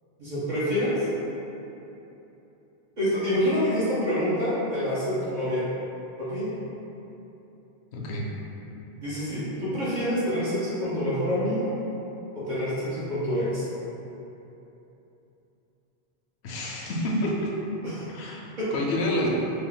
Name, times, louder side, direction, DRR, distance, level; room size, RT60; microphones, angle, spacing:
voice 1, 0.2-1.1 3.0-5.6 6.2-6.5 9.0-11.7 12.3-13.6 17.8-18.0 18.6-18.7, equal, 50° right, -10 dB, 0.7 m, -27 dB
voice 2, 7.9-8.3 16.4-17.5 18.1-19.3, left 1 dB, 75° left, -2 dB, 0.8 m, -28 dB
2.8 x 2.3 x 3.8 m, 3.0 s
omnidirectional pair, 1.1 m